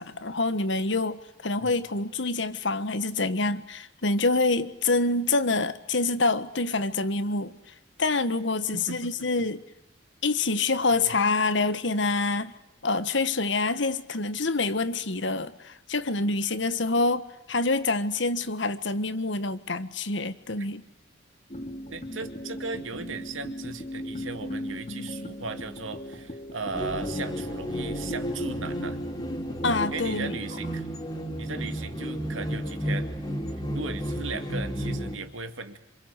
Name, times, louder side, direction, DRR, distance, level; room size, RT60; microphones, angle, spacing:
voice 1, 0.0-7.6 8.0-9.6 10.2-12.5 12.8-20.8 29.6-30.4, left 3 dB, 65° left, 1.4 m, -26 dB
voice 2, 8.7-9.5 11.0-11.2 20.6-20.7 21.9-29.0 29.9-30.9 31.4-33.1 33.7-35.8, right 3 dB, 90° right, 2.4 m, -37 dB
sound 1, 21.5-30.2, equal, 40° left, 2.6 m, -38 dB
sound 2, 26.7-35.2, equal, 20° left, 3.3 m, -32 dB
27.0 x 27.0 x 8.2 m
head